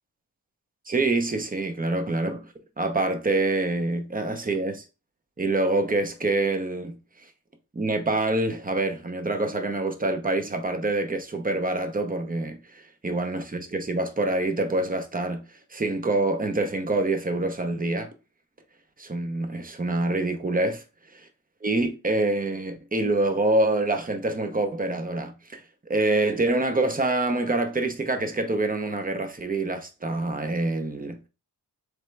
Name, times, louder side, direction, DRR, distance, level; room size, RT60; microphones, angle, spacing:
voice 1, 0.9-4.8 5.4-7.0 7.7-18.1 19.0-20.8 21.6-25.6 25.9-31.3, right 2 dB, 20° right, 0.7 m, -26 dB
3.6 x 3.3 x 3.2 m
wide cardioid pair, 75°, 41 cm